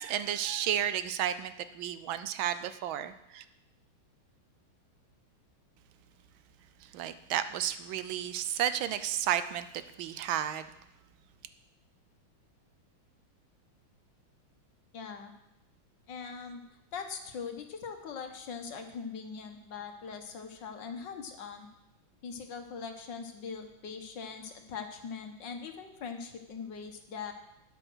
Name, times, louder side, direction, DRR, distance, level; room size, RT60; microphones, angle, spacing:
voice 1, 0.0-3.4 6.8-10.7, right 10 dB, 75° right, 12 dB, 1.4 m, -32 dB
voice 2, 14.9-15.3 16.1-16.6 16.9-21.7 22.2-27.3, left 6 dB, 60° left, 6 dB, 1.8 m, -41 dB
12.0 x 9.0 x 6.2 m, 0.90 s
omnidirectional pair, 2.3 m